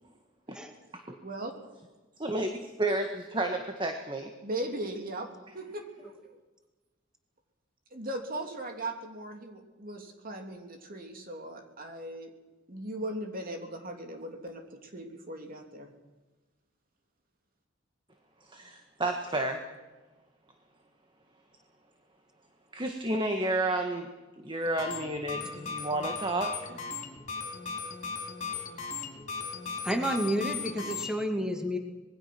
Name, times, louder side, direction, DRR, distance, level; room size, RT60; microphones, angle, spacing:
voice 1, 2.2-4.3 18.5-19.6 22.7-24.1 24.4-26.8, right 2 dB, 25° right, 4 dB, 1.7 m, -31 dB
voice 2, 4.4-5.3 5.5-6.4 7.9-12.3 12.7-15.9, right 1 dB, 45° right, 4 dB, 3.1 m, -38 dB
sound 1, 24.6-31.1, left 5 dB, 35° left, 4.7 m, -37 dB
voice 3, 29.8-31.8, equal, 5° right, 4 dB, 2.2 m, -30 dB
26.0 x 21.0 x 6.1 m, 1.2 s
head